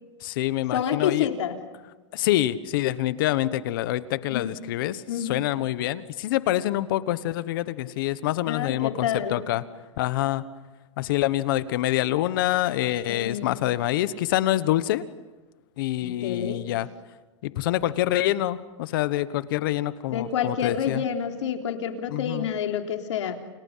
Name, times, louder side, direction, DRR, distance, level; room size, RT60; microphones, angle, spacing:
voice 1, 0.2-1.3 2.1-9.6 10.0-10.4 11.0-15.0 15.8-16.9 17.4-21.0 22.1-22.5, left 14 dB, 45° left, 15 dB, 1.2 m, -26 dB
voice 2, 0.7-1.6 4.3-4.5 5.1-5.4 8.4-9.4 13.1-13.6 16.0-16.7 20.1-23.4, left 8 dB, 75° left, 4 dB, 3.6 m, -28 dB
30.0 x 29.0 x 5.7 m, 1.2 s
supercardioid pair, 165°, 15 cm